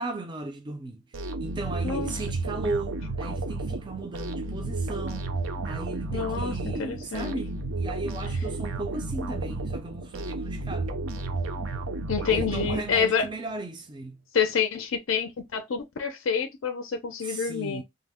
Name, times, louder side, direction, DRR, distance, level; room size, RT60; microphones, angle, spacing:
voice 1, 0.0-5.3 5.6-10.9 12.3-14.2 17.2-17.8, right 3 dB, 20° right, 0.4 m, -36 dB
sound 1, 1.1-13.3, right 2 dB, 80° right, 0.5 m, -32 dB
voice 2, 6.1-7.3 12.1-13.3 14.3-17.8, left 6 dB, 65° left, 0.4 m, -28 dB
2.7 x 2.0 x 3.4 m
head